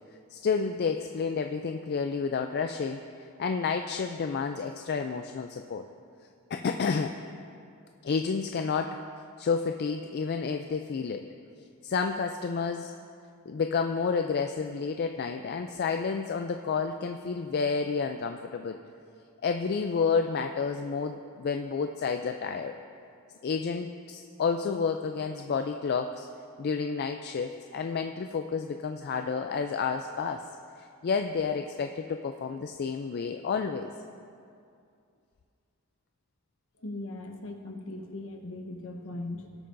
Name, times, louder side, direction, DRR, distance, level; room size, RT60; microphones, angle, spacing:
voice 1, 0.3-3.0 3.4-5.8 6.5-7.2 8.0-9.0 9.4-11.3 11.8-12.9 13.5-18.8 19.4-22.7 23.4-26.3 26.6-30.4 31.0-33.9, left 5 dB, 45° left, 5 dB, 0.3 m, -30 dB
voice 2, 36.8-39.5, left 2 dB, 65° left, 3 dB, 1.0 m, -39 dB
19.0 x 8.4 x 2.6 m, 2.4 s
head